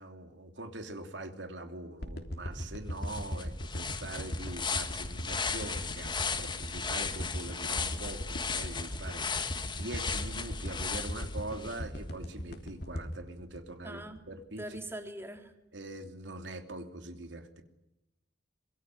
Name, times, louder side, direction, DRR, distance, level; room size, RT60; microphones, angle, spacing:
voice 1, 0.0-14.0 14.3-14.8 15.7-17.6, right 2 dB, 75° right, 6 dB, 3.1 m, -43 dB
sound 1, 2.0-14.3 14.8-14.9, equal, 60° left, 3.3 m, -38 dB
sound 2, 2.6-2.7 3.0-11.8, left 5 dB, 25° left, 2.1 m, -36 dB
voice 2, 13.8-14.2 14.6-15.5, right 1 dB, 15° right, 5 dB, 3.4 m, -42 dB
25.5 x 23.5 x 9.6 m, 0.90 s
head